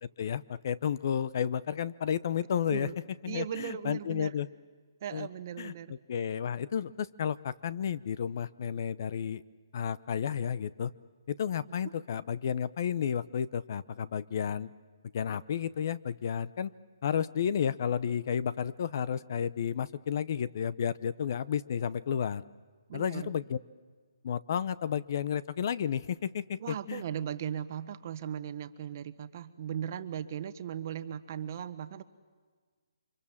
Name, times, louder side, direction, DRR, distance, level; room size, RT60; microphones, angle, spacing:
voice 1, 0.0-2.9 3.2-4.5 5.1-5.3 5.6-9.4 9.7-10.9 11.3-14.7 15.1-16.7 17.0-22.4 22.9-23.6 24.2-27.0, left 8 dB, 45° left, 17 dB, 0.7 m, -32 dB
voice 2, 3.2-4.3 5.0-5.9 22.9-23.3 26.6-32.0, right 9 dB, 40° right, 11 dB, 1.2 m, -38 dB
29.5 x 25.5 x 7.3 m, 1.5 s
hypercardioid pair, 160°, 2 cm